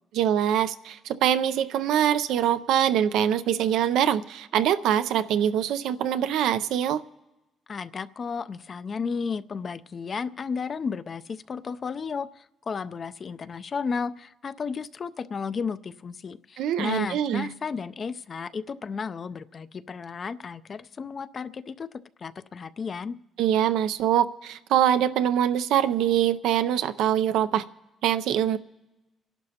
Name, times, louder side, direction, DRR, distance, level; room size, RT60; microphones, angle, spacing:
voice 1, 0.1-7.0 16.6-17.5 23.4-27.6 28.0-28.6, right 10 dB, 85° right, 12 dB, 0.5 m, -24 dB
voice 2, 7.7-21.9 22.2-23.2, left 5 dB, 45° left, 13 dB, 0.4 m, -33 dB
30.0 x 11.5 x 2.8 m, 1.0 s
cardioid pair, 90°, 0 cm